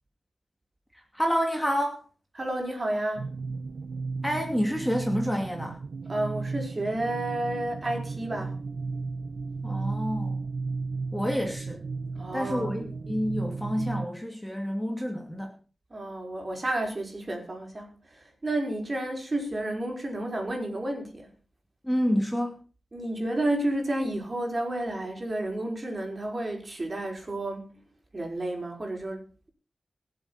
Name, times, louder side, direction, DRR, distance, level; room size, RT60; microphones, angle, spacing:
voice 1, 0.9-2.0 4.2-5.8 9.6-10.4 11.1-11.8 12.3-15.6 21.8-22.6, equal, 5° left, 2.6 m, -28 dB
voice 2, 2.4-3.3 6.1-8.6 12.2-12.7 15.9-21.3 22.9-27.7 28.1-29.2, right 1 dB, 40° right, 5.4 m, -31 dB
sound 1, 3.2-14.1, right 4 dB, 80° right, 0.9 m, -34 dB
23.0 x 7.9 x 4.1 m
wide cardioid pair, 75°, 0 cm